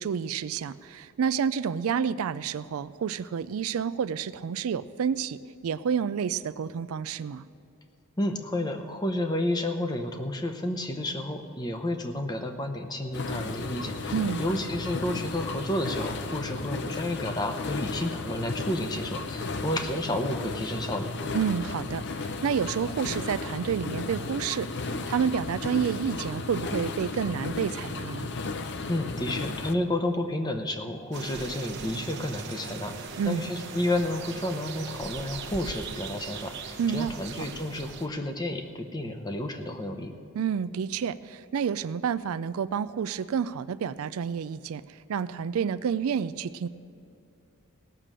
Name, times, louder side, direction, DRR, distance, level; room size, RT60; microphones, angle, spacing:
voice 1, 0.0-7.4 14.1-14.4 21.3-28.3 33.2-33.5 36.8-37.1 37.4-37.5 40.3-46.7, right 7 dB, 75° right, 15 dB, 0.4 m, -29 dB
voice 2, 8.2-21.1 28.9-40.1, left 1 dB, 20° left, 6 dB, 0.8 m, -31 dB
sound 1, 13.1-29.7, left 3 dB, 50° left, 0.6 m, -34 dB
sound 2, 31.1-38.1, right 4 dB, 50° right, 1.0 m, -39 dB
17.0 x 6.7 x 7.4 m, 2.8 s
head